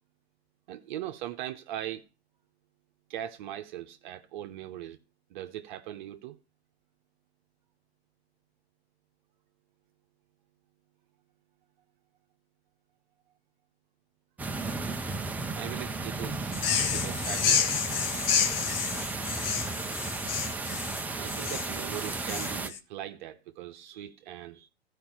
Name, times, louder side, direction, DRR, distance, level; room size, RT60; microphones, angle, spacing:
voice 1, 0.7-2.1 3.1-5.0 5.3-6.4 15.5-17.8 20.9-24.7, right 12 dB, 45° right, 0.9 m, -40 dB
sound 1, 14.4-22.7, right 3 dB, 5° right, 0.5 m, -34 dB
sound 2, 16.5-22.8, left 7 dB, 60° left, 1.2 m, -30 dB
14.5 x 5.1 x 4.5 m
hypercardioid pair, 110°, 32 cm